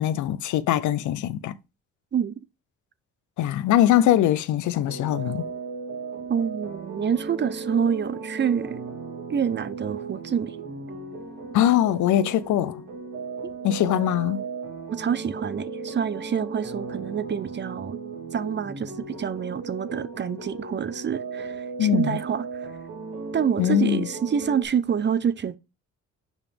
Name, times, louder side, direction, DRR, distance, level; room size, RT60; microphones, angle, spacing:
voice 1, 0.0-1.6 3.4-5.4 11.5-12.8 13.6-14.4 21.8-22.2 23.6-24.1, left 11 dB, 75° left, 0.6 m, -22 dB
sound 1, 4.7-24.6, right 4 dB, 75° right, 3.0 m, -36 dB
voice 2, 6.3-8.8 9.3-10.6 13.4-13.5 14.9-18.0 18.3-22.5 23.3-25.6, right 7 dB, 35° right, 0.6 m, -27 dB
5.3 x 4.9 x 5.2 m
cardioid pair, 90°, 30 cm